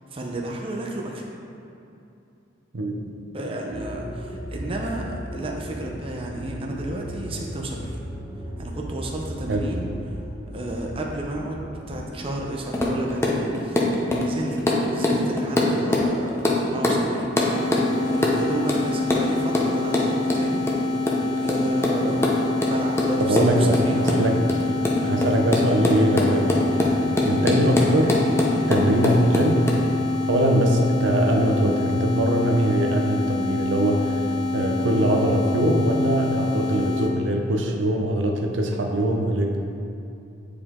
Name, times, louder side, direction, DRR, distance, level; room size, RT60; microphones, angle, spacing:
voice 1, 0.1-1.3 3.3-8.0 8.6-9.9 10.5-14.6 14.9-17.5 18.0-20.6 21.4-22.3 22.6-24.3 25.0-25.3, right 1 dB, 30° right, -1 dB, 0.6 m, -32 dB
voice 2, 2.7-3.1 9.5-9.7 23.3-24.4 25.0-28.2 28.7-29.6 30.3-34.2 34.5-39.6, right 1 dB, 80° right, 2 dB, 0.7 m, -22 dB
sound 1, 3.7-12.2, equal, 35° left, 1.5 m, -36 dB
sound 2, 12.7-16.1 16.4-16.6 16.8-19.3 19.5-29.8, left 2 dB, 15° left, 0.7 m, -22 dB
sound 3, 17.4-37.1, left 2 dB, 55° left, 0.9 m, -27 dB
8.3 x 4.9 x 3.6 m, 2.7 s
head